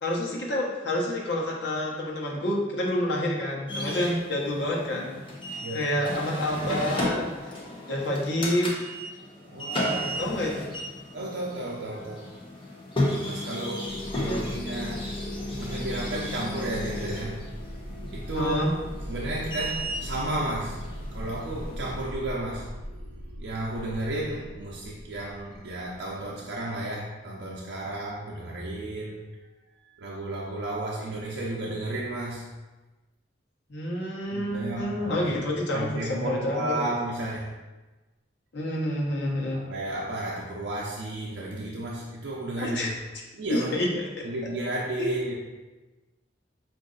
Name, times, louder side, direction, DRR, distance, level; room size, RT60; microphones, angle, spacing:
voice 1, 0.0-5.1 5.7-7.3 7.9-8.9 10.2-10.7 14.2-14.4 18.3-18.7 33.7-36.8 38.5-39.6 42.6-42.9 43.5-44.0, left 1 dB, 65° left, -3 dB, 1.0 m, -28 dB
sound 1, 3.7-22.0, left 1 dB, 30° left, 0.8 m, -34 dB
voice 2, 9.5-10.1 11.1-12.3 13.2-15.1 15.6-17.4 18.1-18.8 19.1-20.8 21.1-22.7 23.4-29.2 29.8-32.5 34.3-35.3 35.7-37.5 39.5-42.9 43.3-43.7 44.2-45.3, right 1 dB, 60° right, -4 dB, 0.6 m, -33 dB
sound 2, 13.8-26.1, equal, 5° right, 0.8 m, -40 dB
5.1 x 2.6 x 3.8 m, 1.2 s
head